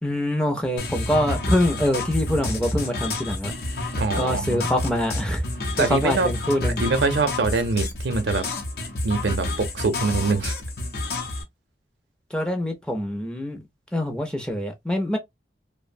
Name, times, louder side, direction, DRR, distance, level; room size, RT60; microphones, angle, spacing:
voice 1, 0.0-3.5 4.2-5.5 5.8-6.8 12.3-13.6 13.9-15.2, left 1 dB, 5° left, 0.4 m, -24 dB
sound 1, 0.8-11.4, left 2 dB, 60° left, 0.6 m, -29 dB
voice 2, 3.9-4.6 5.8-6.3 6.8-8.5 9.0-10.5, right 3 dB, 70° right, 0.6 m, -24 dB
2.5 x 2.0 x 2.5 m
head